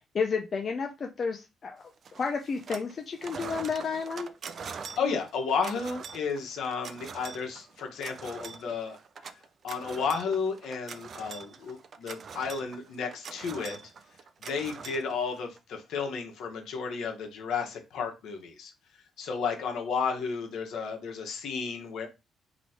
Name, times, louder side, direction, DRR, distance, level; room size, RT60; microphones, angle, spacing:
voice 1, 0.1-1.8 2.2-4.3, left 5 dB, 45° left, 3 dB, 0.5 m, -31 dB
sound 1, 2.0-2.9 3.2-15.6, right 5 dB, 50° right, 0.5 m, -43 dB
voice 2, 5.0-9.0 9.6-13.8 14.4-18.7 19.2-22.1, left 5 dB, 75° left, 3 dB, 1.2 m, -32 dB
3.1 x 2.9 x 4.2 m, 0.26 s
cardioid pair, 90°, 0 cm